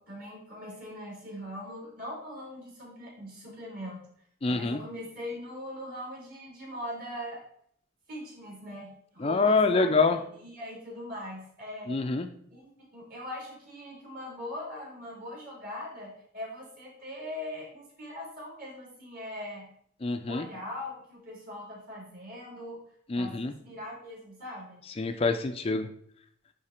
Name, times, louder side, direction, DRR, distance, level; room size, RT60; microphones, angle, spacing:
voice 1, 0.0-4.1 4.5-7.4 8.1-10.1 10.4-12.0 12.5-19.7 20.3-22.8 23.1-24.8, left 1 dB, 45° right, -3 dB, 3.4 m, -41 dB
voice 2, 4.4-4.8 9.2-10.2 11.9-12.3 20.0-20.5 23.1-23.5 25.0-25.9, left 3 dB, 30° left, 7 dB, 0.4 m, -26 dB
9.9 x 3.9 x 4.3 m, 0.67 s
head